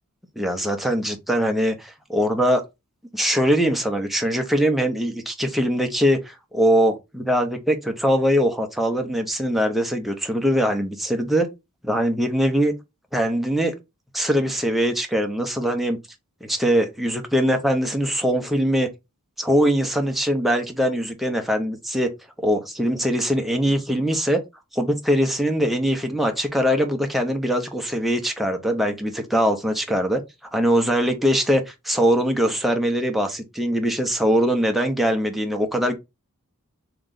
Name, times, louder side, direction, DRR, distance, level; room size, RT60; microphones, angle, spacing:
voice 1, 0.4-2.6 3.1-11.5 11.8-12.7 13.1-13.7 14.1-16.0 16.4-18.9 19.4-22.1 22.4-24.4 24.7-30.2 30.5-36.0, equal, ahead, 0.7 m, -22 dB
3.8 x 3.0 x 3.8 m
head